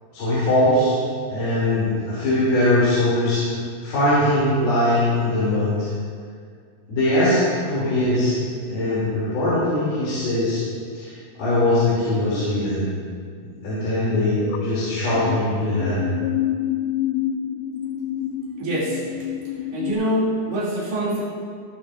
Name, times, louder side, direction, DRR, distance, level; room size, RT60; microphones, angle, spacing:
voice 1, 0.1-0.9 1.3-3.4 3.8-5.9 6.9-8.4 8.7-10.6 10.9-11.1 11.4-12.8 13.4-16.0, left 1 dB, 60° left, -11 dB, 4.7 m, -21 dB
sound 1, 12.1-12.7 14.4-15.4 15.8-19.9, left 11 dB, 80° left, 2.6 m, -28 dB
voice 2, 18.6-19.0 19.7-21.2, right 1 dB, 75° right, -8 dB, 5.2 m, -24 dB
19.0 x 10.5 x 2.6 m, 2.1 s
omnidirectional pair, 5.2 m